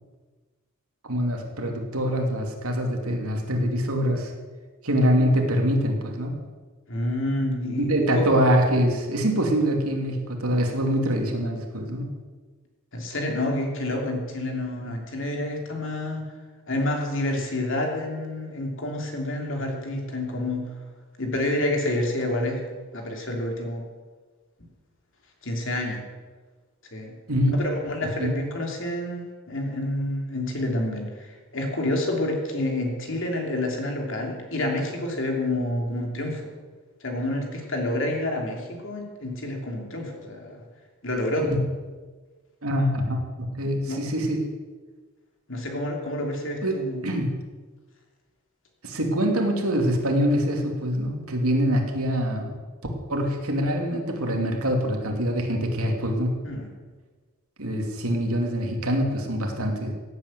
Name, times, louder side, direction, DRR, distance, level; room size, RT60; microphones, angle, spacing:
voice 1, 1.0-4.3 4.8-6.4 7.8-12.1 27.3-27.7 28.0-28.4 37.9-38.0 41.4-41.6 42.6-44.5 46.6-47.3 48.8-52.6 53.1-56.3 57.6-59.9, equal, 80° right, 2 dB, 2.8 m, -24 dB
voice 2, 6.9-7.9 8.1-8.3 12.9-16.2 16.7-20.7 21.2-22.6 22.9-23.8 25.4-26.0 26.9-27.1 27.5-36.4 37.0-40.6 41.0-41.5 43.9-44.0 45.5-47.1 56.4-56.7, left 1 dB, 60° left, 1 dB, 3.1 m, -28 dB
17.0 x 9.0 x 7.8 m, 1.4 s
head